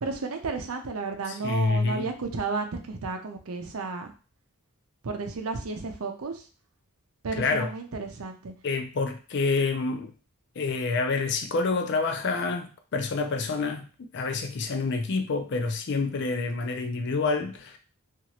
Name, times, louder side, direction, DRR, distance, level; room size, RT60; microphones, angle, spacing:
voice 1, 0.0-4.1 5.0-6.4 7.2-8.5, right 4 dB, 75° right, 0.6 m, -32 dB
voice 2, 1.3-2.0 7.4-7.7 8.6-10.1 10.6-13.9 14.1-17.8, left 4 dB, 50° left, 0.4 m, -27 dB
2.9 x 2.5 x 2.8 m
head